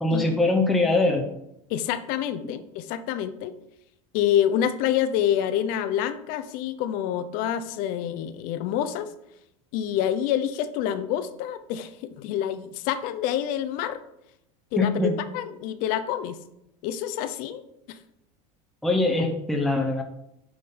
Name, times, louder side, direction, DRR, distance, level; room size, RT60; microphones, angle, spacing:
voice 1, 0.0-1.3 14.8-15.1 18.8-20.0, left 2 dB, ahead, 1 dB, 0.6 m, -22 dB
voice 2, 1.7-3.5 4.1-9.1 9.7-14.0 14.7-16.4 16.8-17.6 17.9-18.0, left 10 dB, 55° left, 11 dB, 0.5 m, -27 dB
7.7 x 3.7 x 5.4 m, 0.83 s
supercardioid pair, 135°, 17 cm